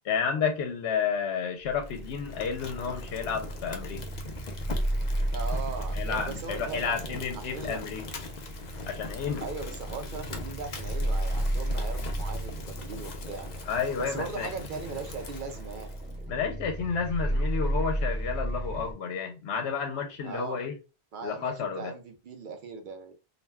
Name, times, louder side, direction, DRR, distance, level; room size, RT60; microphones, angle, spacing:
voice 1, 0.1-4.0 5.9-8.0 8.9-9.4 13.7-14.5 16.3-20.7 21.2-21.9, left 6 dB, 75° left, 0.8 m, -31 dB
sound 1, 1.6-18.9, right 1 dB, 10° right, 0.7 m, -34 dB
Fire, 1.8-16.2, left 3 dB, 60° left, 0.5 m, -42 dB
voice 2, 5.3-7.8 9.4-13.5 14.0-15.9 20.2-20.6 21.1-23.1, right 4 dB, 55° right, 0.7 m, -39 dB
2.4 x 2.2 x 3.2 m
omnidirectional pair, 1.1 m